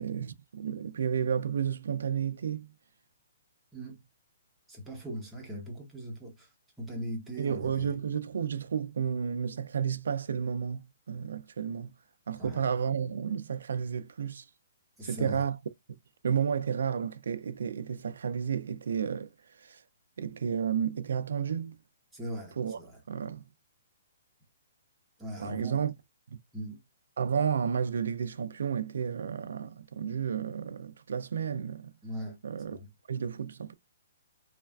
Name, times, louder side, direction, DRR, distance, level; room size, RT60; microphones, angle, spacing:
voice 1, 0.0-2.7 7.4-11.9 12.3-14.5 15.0-15.6 16.2-19.8 20.2-21.8 22.6-22.8 23.1-23.4 25.4-25.9 26.3-26.4 27.2-31.9 32.4-32.8 33.1-33.7, right 7 dB, 80° right, 0.4 m, -32 dB
voice 2, 4.7-6.5 6.8-7.9 12.4-12.6 15.0-15.4 22.1-22.9 25.2-25.8 26.5-26.8 32.0-32.4 32.7-32.9, right 1 dB, 5° right, 0.8 m, -39 dB
3.1 x 2.4 x 2.3 m
hypercardioid pair, 165°, 0 cm